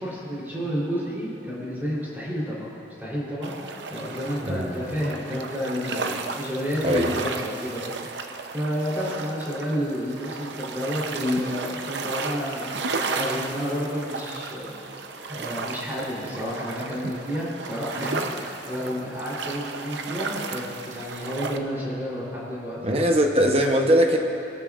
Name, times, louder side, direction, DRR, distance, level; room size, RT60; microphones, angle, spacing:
voice 1, 0.0-2.7 3.0-14.7 15.3-22.8, equal, 10° right, -7 dB, 3.3 m, -30 dB
sound 1, 3.4-21.6, right 4 dB, 70° right, 0.7 m, -34 dB
voice 2, 4.4-4.8 6.8-7.2 22.8-24.2, equal, 35° right, 3 dB, 0.8 m, -21 dB
21.0 x 12.5 x 2.4 m, 2.9 s
head